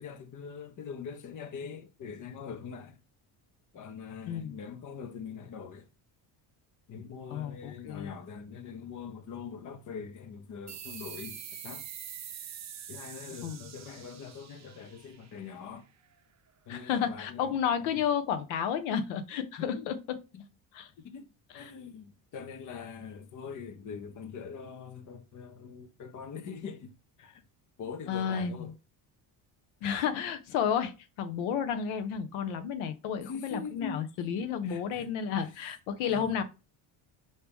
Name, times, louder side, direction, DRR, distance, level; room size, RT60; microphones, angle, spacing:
voice 1, 0.0-3.0 3.7-5.9 6.9-11.9 12.9-15.8 16.7-17.5 17.9-18.0 19.6-19.9 20.3-20.4 21.0-21.3 21.5-26.9 27.2-27.4 27.8-28.7 33.2-34.0 34.6-35.5 36.0-36.3, left 6 dB, 40° left, 0.7 m, -43 dB
voice 2, 4.3-4.6 7.3-8.1 13.4-13.6 16.7-20.0 20.7-20.9 21.5-21.7 28.1-28.7 29.8-36.4, left 8 dB, 90° left, 0.8 m, -32 dB
sound 1, 10.7-15.8, right 9 dB, 35° right, 0.6 m, -45 dB
4.5 x 2.9 x 3.4 m
cardioid pair, 100°, 46 cm